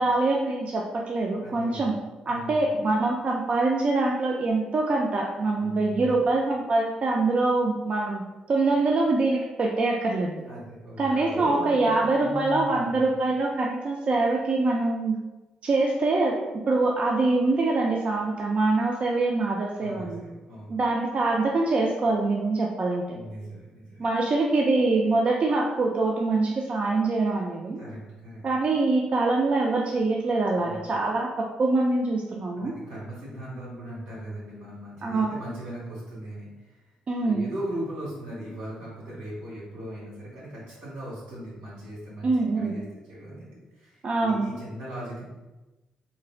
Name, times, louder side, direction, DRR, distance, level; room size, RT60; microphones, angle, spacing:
voice 1, 0.0-1.9 2.3-8.2 8.5-10.3 11.0-15.2 15.6-16.4 16.7-20.2 20.7-23.0 24.0-27.8 28.4-32.7 35.0-35.3 37.1-37.4 42.2-42.8 44.0-44.5, right 3 dB, 45° right, 0 dB, 0.4 m, -24 dB
voice 2, 1.4-1.8 2.3-2.6 5.6-6.2 10.4-13.1 19.8-20.8 23.1-24.1 27.8-28.4 30.5-30.8 32.5-36.8 37.2-45.2, right 1 dB, 90° right, -7 dB, 1.3 m, -38 dB
3.7 x 2.1 x 2.4 m, 1.1 s
supercardioid pair, 60°, 3 cm